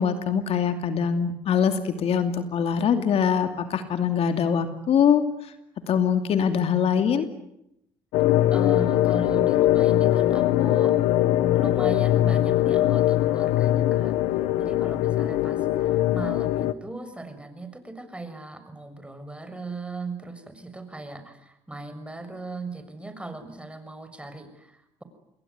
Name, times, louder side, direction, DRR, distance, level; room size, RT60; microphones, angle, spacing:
voice 1, 0.0-5.2 5.9-7.3, left 7 dB, 60° left, 8 dB, 2.7 m, -23 dB
sound 1, 8.1-16.7, left 14 dB, 85° left, 1.2 m, -21 dB
voice 2, 8.5-10.9 11.5-14.2 14.6-25.0, right 3 dB, 10° right, 9 dB, 6.6 m, -38 dB
28.5 x 21.5 x 9.7 m, 0.82 s
supercardioid pair, 70°, 11 cm